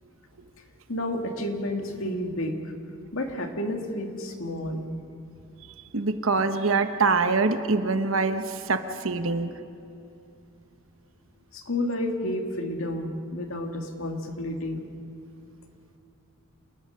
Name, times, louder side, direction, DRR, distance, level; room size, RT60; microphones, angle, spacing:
voice 1, 0.9-2.5 3.1-4.9 11.5-14.8, left 1 dB, 65° left, 4 dB, 2.2 m, -30 dB
voice 2, 5.9-9.5, right 4 dB, 65° right, 9 dB, 1.1 m, -24 dB
27.5 x 20.0 x 5.7 m, 2.7 s
head